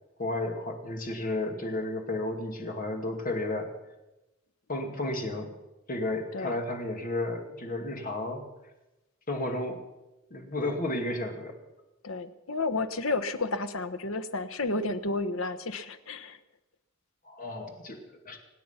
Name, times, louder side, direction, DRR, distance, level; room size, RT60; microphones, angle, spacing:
voice 1, 0.2-3.7 4.7-5.5 5.9-8.4 9.3-9.8 10.3-11.6 17.2-18.0 18.2-18.4, left 2 dB, 40° left, 3 dB, 2.5 m, -32 dB
voice 2, 12.0-16.4, left 3 dB, 75° left, 11 dB, 1.1 m, -31 dB
25.5 x 9.4 x 5.8 m, 1.0 s
head